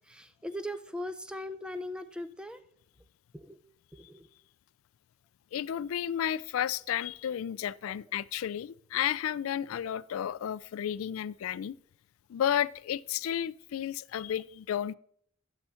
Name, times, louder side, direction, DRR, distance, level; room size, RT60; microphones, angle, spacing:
voice 1, 0.0-2.6 3.3-3.6 3.9-4.3 7.9-8.0, left 1 dB, 5° right, 0.4 m, -39 dB
voice 2, 5.5-11.8 12.3-14.9, left 10 dB, 85° left, 0.3 m, -32 dB
8.7 x 6.7 x 5.6 m
head